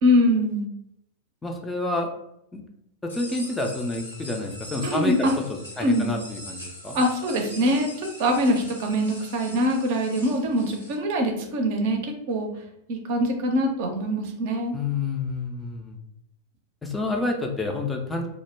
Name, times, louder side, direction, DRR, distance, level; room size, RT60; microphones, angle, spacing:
voice 1, 0.0-0.7 4.8-5.3 5.8-6.1 6.9-7.9 8.2-12.5 12.9-14.7, equal, 50° right, 3 dB, 0.5 m, -23 dB
voice 2, 1.4-2.1 2.5-2.6 3.0-7.0 14.7-16.0 16.8-18.3, left 2 dB, 10° left, 2 dB, 0.4 m, -29 dB
sound 1, 3.1-10.9, left 1 dB, 85° left, 0.9 m, -42 dB
2.1 x 2.0 x 3.2 m, 0.77 s
figure-of-eight pair, 90°, 0 cm